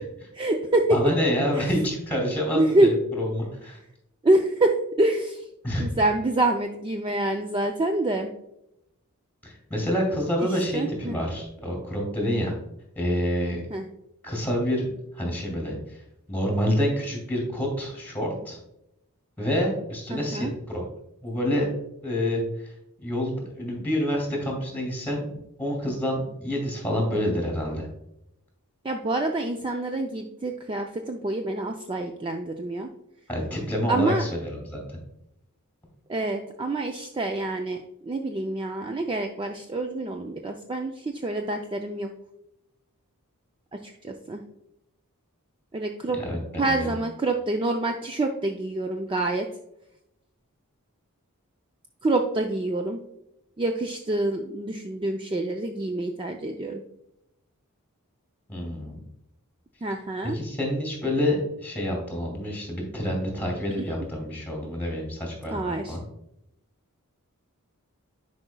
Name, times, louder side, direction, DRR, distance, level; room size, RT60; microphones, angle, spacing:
voice 1, 0.3-1.0 1.5-1.7 2.5-2.9 4.2-5.5 5.8-8.3 10.4-11.2 13.7-13.8 20.1-20.5 28.8-32.9 33.9-34.2 36.1-42.1 43.7-44.4 45.7-46.2 46.6-49.5 52.0-53.0 53.6-56.8 59.8-60.4 65.5-66.0, right 2 dB, 20° right, 3 dB, 0.4 m, -26 dB
voice 2, 0.9-2.9 3.2-3.8 5.6-5.9 9.4-12.5 13.0-13.6 14.2-14.9 15.1-16.0 16.3-18.6 19.4-20.8 21.2-21.7 22.0-22.4 23.0-25.3 25.6-27.9 33.3-35.0 46.2-46.9 58.5-59.0 60.3-65.6 65.9-66.0, equal, 10° left, 1 dB, 2.3 m, -27 dB
10.5 x 4.9 x 2.2 m, 0.82 s
head